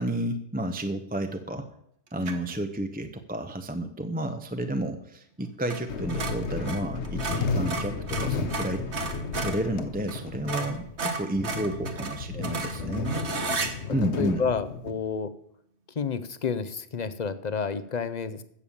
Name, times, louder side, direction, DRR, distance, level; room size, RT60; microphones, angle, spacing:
voice 1, 0.0-1.7 2.1-9.1 9.4-13.2 13.9-14.4, right 1 dB, 10° right, 7 dB, 0.7 m, -31 dB
sound 1, 2.2-2.5 5.6-5.8 6.1-9.6 10.1-10.2 10.5-13.7, right 3 dB, 80° right, 1.7 m, -33 dB
sound 2, 5.9-14.9, left 4 dB, 80° left, 1.3 m, -33 dB
voice 2, 12.3-13.2 13.9-15.3 16.0-18.4, left 5 dB, 45° left, 13 dB, 0.8 m, -31 dB
15.0 x 6.9 x 7.1 m, 0.70 s
omnidirectional pair, 1.1 m